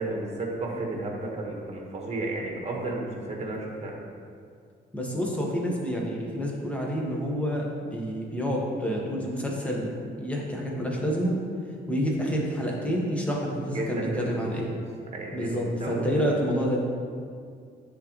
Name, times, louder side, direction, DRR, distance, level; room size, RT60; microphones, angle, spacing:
voice 1, 0.0-3.9 13.7-14.5 15.1-15.5 15.8-16.1, right 2 dB, 30° right, -1 dB, 1.4 m, -33 dB
voice 2, 4.9-11.4 11.9-14.7 15.3-16.8, equal, 5° left, -2 dB, 1.3 m, -28 dB
9.9 x 3.9 x 3.1 m, 2.2 s
cardioid pair, 90°, 20 cm